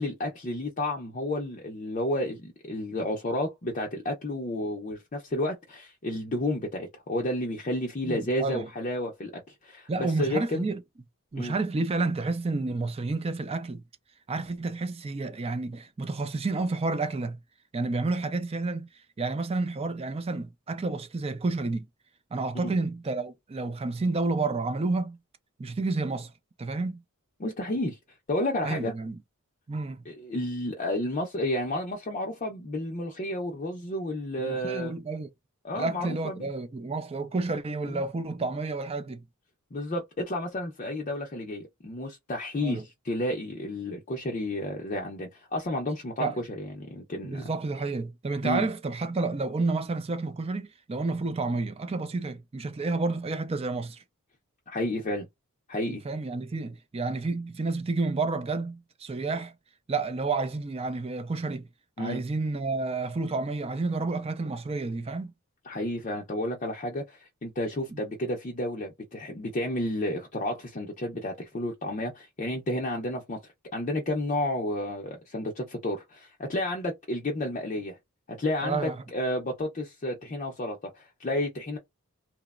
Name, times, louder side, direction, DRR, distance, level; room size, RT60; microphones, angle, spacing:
voice 1, 0.0-10.7 11.3-11.5 22.5-22.7 27.4-28.0 28.3-28.9 30.1-34.9 35.6-36.5 37.9-38.0 39.7-47.5 48.4-48.7 54.7-55.3 55.7-56.0 62.0-62.2 65.7-73.4 73.7-78.0 78.4-81.8, left 1 dB, 35° left, 0.5 m, -31 dB
voice 2, 8.0-8.7 9.9-10.8 11.3-13.8 14.3-17.4 17.7-18.9 19.2-21.9 22.3-25.2 25.6-26.3 26.6-27.0 28.6-29.2 29.7-30.1 34.4-35.3 35.8-39.3 42.6-42.8 46.2-46.4 47.2-54.0 55.8-59.5 59.9-61.7 62.0-65.3 67.9-68.0 78.6-79.0, right 3 dB, 25° right, 0.4 m, -30 dB
2.9 x 2.0 x 2.3 m
head